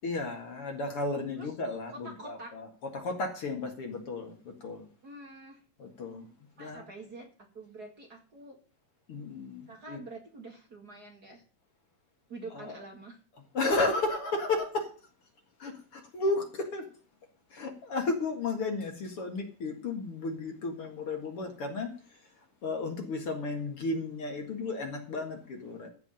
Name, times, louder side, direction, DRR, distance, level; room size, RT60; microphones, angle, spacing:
voice 1, 0.0-2.7 2.9-4.3 4.6-4.8 5.8-6.2 6.6-6.8 9.1-9.6 9.9-10.0 12.5-12.7 13.5-14.9 15.6-16.8 17.5-21.9 22.6-25.9, left 3 dB, 50° left, 3 dB, 2.5 m, -33 dB
voice 2, 1.9-2.5 5.0-5.6 6.6-8.6 9.7-11.4 12.3-13.2, right 2 dB, 35° right, 2 dB, 2.1 m, -46 dB
14.5 x 4.9 x 8.9 m, 0.40 s
omnidirectional pair, 3.5 m